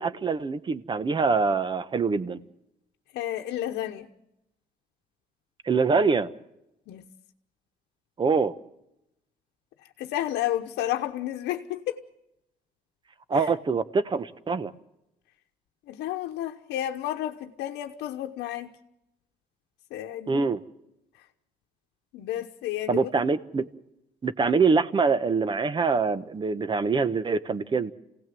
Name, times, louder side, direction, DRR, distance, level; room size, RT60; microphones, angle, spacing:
voice 1, 0.0-2.4 5.6-6.3 8.2-8.5 13.3-14.7 20.3-20.6 22.9-23.7 24.2-27.9, right 4 dB, 30° right, 1.1 m, -24 dB
voice 2, 3.1-4.1 6.9-7.1 9.8-12.0 13.3-13.5 15.9-18.8 19.9-20.5 21.1-21.2 22.1-23.1, left 12 dB, 80° left, 1.1 m, -31 dB
27.5 x 17.5 x 7.7 m
cardioid pair, 110°, 17 cm